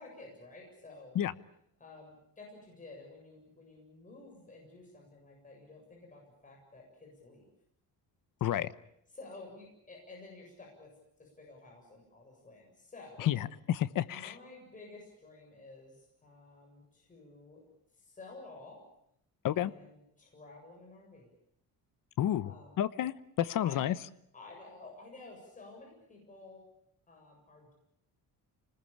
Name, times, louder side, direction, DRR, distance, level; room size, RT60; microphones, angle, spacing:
voice 1, 0.0-1.2 1.8-7.5 9.1-10.9 11.2-13.3 14.1-17.6 17.9-18.8 19.5-21.3 22.4-22.7 23.6-23.8 24.3-26.6 27.1-27.7, left 3 dB, 20° left, -1 dB, 7.5 m, -52 dB
voice 2, 8.4-8.7 13.2-14.4 19.4-19.7 22.2-24.0, left 11 dB, 60° left, 14 dB, 1.0 m, -31 dB
28.0 x 20.0 x 8.8 m, 0.76 s
cardioid pair, 165°, 37 cm